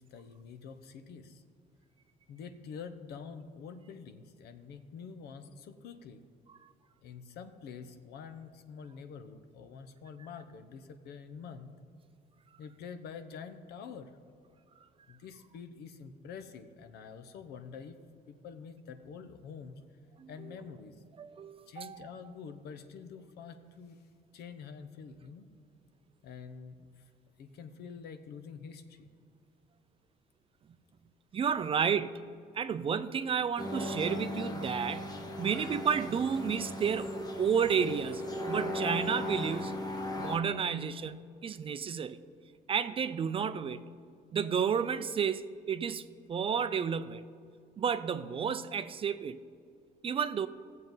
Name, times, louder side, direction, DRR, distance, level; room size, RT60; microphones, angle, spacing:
voice 1, 0.0-1.4 2.3-6.2 7.0-11.7 12.6-14.2 15.1-18.0 18.3-19.8 20.3-21.0 21.7-24.0 24.3-25.5 26.2-27.1 27.4-29.1, left 6 dB, 70° left, 9 dB, 0.8 m, -47 dB
voice 2, 21.2-22.1 31.3-32.2 32.5-37.1 37.4-39.8 40.2-42.2 42.7-43.8 44.3-47.2 47.8-49.4 50.0-50.5, right 7 dB, 35° right, 12 dB, 0.4 m, -31 dB
sound 1, 33.6-40.4, left 1 dB, 25° left, 1.1 m, -37 dB
17.0 x 7.5 x 3.9 m, 2.3 s
cardioid pair, 110°, 17 cm